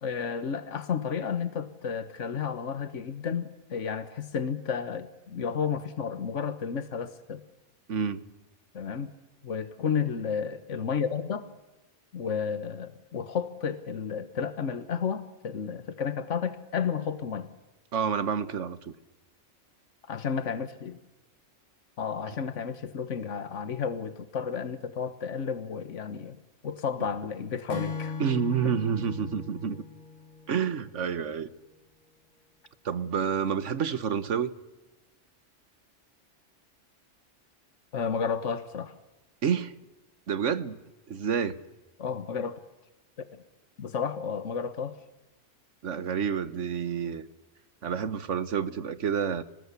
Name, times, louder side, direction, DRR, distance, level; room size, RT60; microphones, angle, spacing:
voice 1, 0.0-7.4 8.7-9.1 9.4-11.5 12.1-17.5 20.1-21.0 22.0-26.4 26.6-28.2 37.9-38.9 42.0-42.6 43.3-43.4 43.8-45.0, left 6 dB, 85° left, 1.6 m, -32 dB
voice 2, 7.9-8.2 17.9-18.9 28.2-29.8 30.5-31.5 32.8-34.5 39.4-39.7 40.3-40.8 41.1-41.6 45.8-47.2 47.8-49.4, right 7 dB, 85° right, 1.5 m, -29 dB
Acoustic guitar / Strum, 27.7-31.1, left 5 dB, 40° left, 1.3 m, -39 dB
26.5 x 19.5 x 8.3 m
omnidirectional pair, 1.2 m